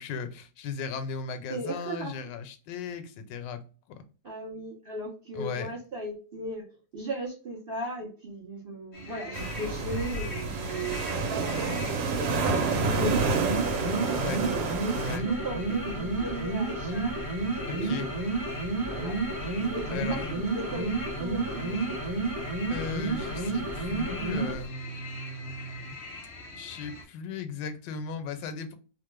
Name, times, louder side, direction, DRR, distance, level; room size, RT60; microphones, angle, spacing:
voice 1, 0.0-3.6 3.9-4.0 5.3-5.7 14.1-14.4 15.0-15.2 17.7-18.1 19.9-20.3 22.7-25.9 26.6-28.7, left 4 dB, 80° left, 1.2 m, -36 dB
voice 2, 1.5-2.3 4.2-6.7 6.9-13.5 14.3-17.1 17.6-18.2 18.8-19.2 19.6-21.8, right 2 dB, 65° right, 0.5 m, -37 dB
sound 1, 8.9-27.0, left 3 dB, 55° left, 0.8 m, -44 dB
sound 2, 9.3-15.2, right 4 dB, 80° right, 1.3 m, -29 dB
sound 3, 12.7-24.7, right 2 dB, 20° right, 0.6 m, -31 dB
3.0 x 2.1 x 3.1 m
omnidirectional pair, 2.0 m